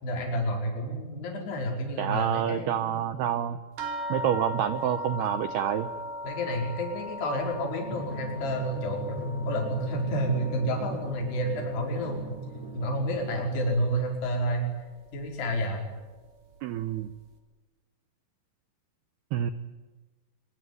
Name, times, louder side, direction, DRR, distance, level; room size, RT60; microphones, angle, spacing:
voice 1, 0.0-2.9 6.2-12.2 12.7-14.7 15.1-15.8, equal, 50° left, 1 dB, 6.8 m, -30 dB
voice 2, 2.0-3.6 4.1-5.9 16.6-17.1 19.3-19.5, right 10 dB, 85° right, 11 dB, 2.3 m, -28 dB
sound 1, 3.8-12.6 12.9-13.8 14.5-14.6 15.1-15.2, left 1 dB, 55° right, 4.5 m, -39 dB
Drum, 7.9-13.4, right 1 dB, 30° right, 3.7 m, -39 dB
24.0 x 24.0 x 9.6 m, 1.2 s
omnidirectional pair, 6.0 m